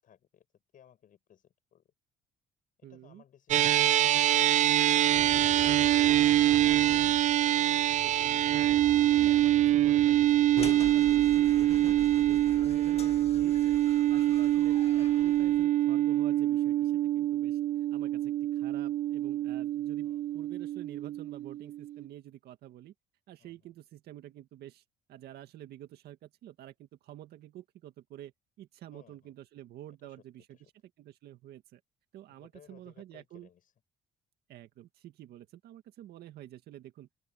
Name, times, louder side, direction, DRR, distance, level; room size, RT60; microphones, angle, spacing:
voice 1, 0.0-1.9 2.8-5.8 14.2-14.7 20.0-20.4 23.4-23.7 28.9-29.3 29.9-30.2 30.5-30.7 32.3-33.7, left 9 dB, 55° left, 7.9 m, -61 dB
voice 2, 2.8-3.2 5.3-5.4 8.0-13.8 14.1-17.6 17.9-22.9 23.3-24.8 25.1-28.3 28.6-30.5 31.0-31.8 32.1-33.5 34.5-37.1, right 13 dB, 70° right, 2.0 m, -49 dB
sound 1, 3.5-22.1, right 13 dB, 45° right, 0.4 m, -25 dB
sound 2, 5.1-13.6, right 5 dB, 30° right, 3.8 m, -47 dB
sound 3, 10.6-15.6, left 6 dB, 35° left, 2.1 m, -44 dB
open air
cardioid pair, 110°, 17 cm